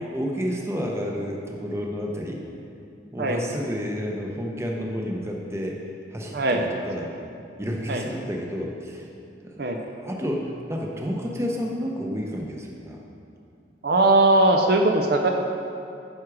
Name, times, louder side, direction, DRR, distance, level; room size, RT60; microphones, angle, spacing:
voice 1, 0.0-2.4 3.1-5.8 6.1-7.1 7.6-9.1 9.4-13.0, equal, 15° right, 0 dB, 0.8 m, -30 dB
voice 2, 6.3-6.6 7.9-8.0 9.6-9.8 13.8-15.3, right 2 dB, 55° right, 3 dB, 0.6 m, -19 dB
9.6 x 6.0 x 4.8 m, 2.6 s
head